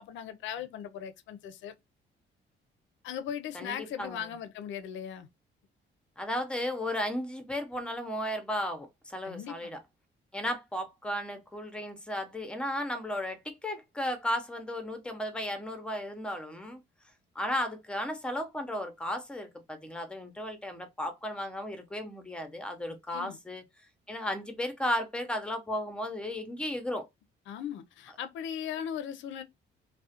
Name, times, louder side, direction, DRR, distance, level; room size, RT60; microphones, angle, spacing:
voice 1, 0.0-1.7 3.0-5.3 9.2-9.8 23.1-23.4 27.5-29.4, left 9 dB, 70° left, 0.4 m, -38 dB
voice 2, 3.5-4.2 6.2-9.8 10.3-16.8 17.4-23.6 24.1-27.1, left 1 dB, 5° left, 0.6 m, -34 dB
2.3 x 2.1 x 2.7 m
cardioid pair, 90°, 20 cm